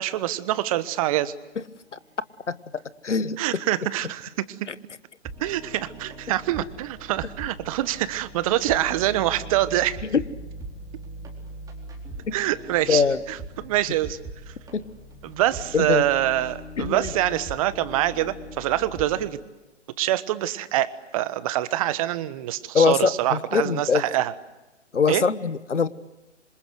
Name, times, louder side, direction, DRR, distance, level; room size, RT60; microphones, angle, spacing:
voice 1, 0.0-1.3 3.4-4.4 5.4-10.0 12.3-13.4 13.6-14.2 14.5-14.6 15.2-19.4 20.0-24.3 25.1-25.2, right 14 dB, 30° right, 16 dB, 1.3 m, -25 dB
voice 2, 3.0-3.4 4.7-4.8 10.0-10.2 12.9-13.2 14.7-14.8 15.7-16.0 16.8-17.1 22.7-24.1 24.9-25.9, left 5 dB, 75° left, 16 dB, 1.4 m, -22 dB
sound 1, 4.0-4.3 5.2-19.3, right 2 dB, 10° right, 4.2 m, -40 dB
26.5 x 26.5 x 8.1 m, 1.0 s
figure-of-eight pair, 130°, 36 cm